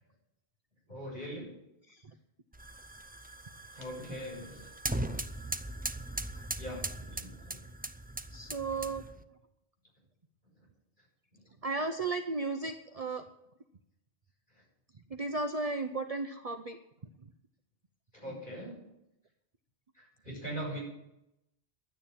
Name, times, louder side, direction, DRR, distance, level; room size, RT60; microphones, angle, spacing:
voice 1, 0.9-1.5 3.7-4.7 6.6-7.7 11.3-11.4 18.1-18.8 19.9-20.8, equal, 45° left, -3 dB, 6.8 m, -41 dB
sound 1, 2.5-9.2, right 1 dB, 10° right, 0.4 m, -39 dB
voice 2, 8.3-9.0 11.6-13.2 15.1-16.8, right 3 dB, 40° right, 6 dB, 0.8 m, -34 dB
11.5 x 9.7 x 8.9 m, 0.86 s
omnidirectional pair, 1.1 m